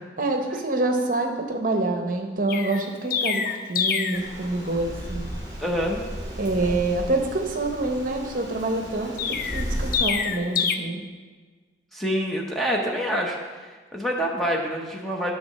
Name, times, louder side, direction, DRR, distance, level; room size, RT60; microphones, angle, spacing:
voice 1, 0.2-5.3 6.4-11.0, right 2 dB, 45° right, 3 dB, 0.8 m, -26 dB
Chirp tweet, 2.5-4.3 9.2-10.8, left 7 dB, 50° left, 0.4 m, -26 dB
sound 1, 4.1-10.0, equal, 20° right, 1.7 m, -34 dB
voice 2, 5.6-6.0 11.9-15.3, equal, ahead, -1 dB, 0.7 m, -27 dB
10.5 x 3.6 x 6.5 m, 1.5 s
head